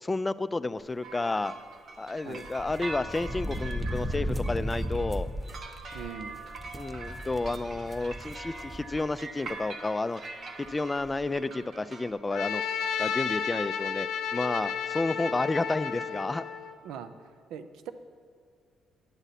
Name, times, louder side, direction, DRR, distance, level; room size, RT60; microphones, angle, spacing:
voice 1, 0.0-1.5 2.0-5.3 6.7-10.2 10.6-12.6 13.0-16.4, left 2 dB, 20° left, 15 dB, 0.3 m, -31 dB
sound 1, 1.0-12.1, right 3 dB, 55° right, 0.9 m, -43 dB
sound 2, 2.4-9.1 9.5-9.6 10.6-10.7 11.0-11.3, equal, 5° right, 0.7 m, -36 dB
voice 2, 5.9-6.4 16.8-17.1 17.5-17.9, right 8 dB, 90° right, 11 dB, 0.5 m, -40 dB
Trumpet, 12.3-16.7, left 7 dB, 80° left, 0.7 m, -32 dB
11.0 x 7.9 x 4.1 m, 2.1 s
cardioid pair, 90°, 0 cm